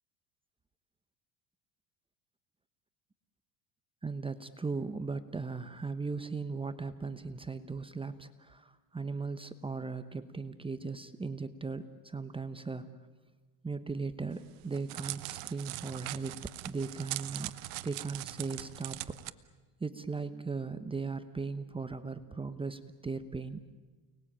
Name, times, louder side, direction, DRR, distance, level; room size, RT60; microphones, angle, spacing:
voice 1, 4.0-12.9 13.6-19.2 19.8-23.6, right 4 dB, 10° right, 11 dB, 1.0 m, -38 dB
Crackle, 14.3-19.3, right 19 dB, 75° right, 1.1 m, -41 dB
29.5 x 20.5 x 8.8 m, 1.3 s
supercardioid pair, 115°, 43 cm